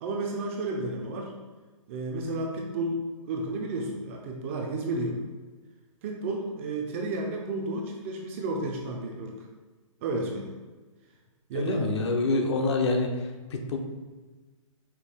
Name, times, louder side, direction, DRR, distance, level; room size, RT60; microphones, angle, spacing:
voice 1, 0.0-1.3 1.9-3.0 3.3-5.2 6.0-9.5 10.0-10.5 11.5-11.8, right 2 dB, 25° right, 0 dB, 0.4 m, -32 dB
voice 2, 11.5-13.8, left 3 dB, 55° left, 4 dB, 0.6 m, -27 dB
5.5 x 2.2 x 3.5 m, 1.3 s
hypercardioid pair, 155°, 17 cm